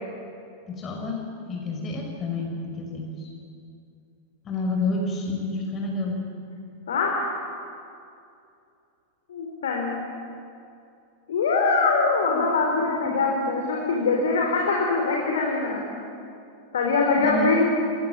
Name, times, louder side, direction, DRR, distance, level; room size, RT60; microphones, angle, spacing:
voice 1, 0.7-3.3 4.4-6.2 12.3-12.5 12.9-13.2 17.2-17.6, left 2 dB, 25° left, 0 dB, 5.8 m, -30 dB
voice 2, 6.9-7.4 9.3-10.0 11.3-15.8 16.7-17.7, left 4 dB, 65° left, 0 dB, 4.2 m, -23 dB
29.5 x 21.5 x 8.9 m, 2.6 s
figure-of-eight pair, 90°, 0 cm